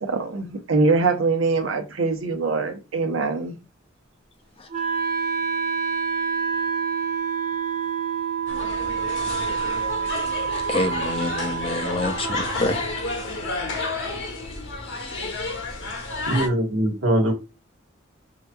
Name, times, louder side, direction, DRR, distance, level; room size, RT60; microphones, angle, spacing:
voice 1, 0.0-3.6, right 3 dB, 90° right, 0.8 m, -23 dB
Wind instrument woodwind instrument, 4.7-14.7, right 6 dB, 40° right, 0.9 m, -28 dB
sound 1, 8.5-16.5, left 2 dB, 65° left, 1.0 m, -31 dB
voice 2, 10.7-12.8 14.9-15.5, left 2 dB, 30° left, 0.5 m, -27 dB
voice 3, 16.3-17.3, right 1 dB, 70° right, 1.2 m, -21 dB
4.9 x 2.9 x 2.2 m
head